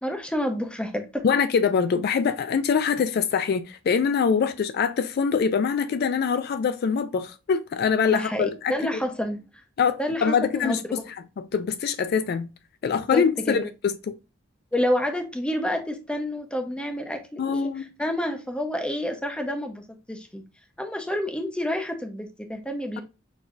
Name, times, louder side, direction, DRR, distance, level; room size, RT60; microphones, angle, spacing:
voice 1, 0.0-1.2 8.1-9.4 10.0-10.4 10.6-10.8 12.8-13.7 14.7-20.4 20.8-23.0, left 1 dB, 5° left, 0.6 m, -29 dB
voice 2, 1.2-9.0 9.8-11.0 11.4-12.5 12.8-14.1 17.4-17.9, left 6 dB, 50° left, 0.3 m, -24 dB
6.0 x 2.6 x 2.4 m
head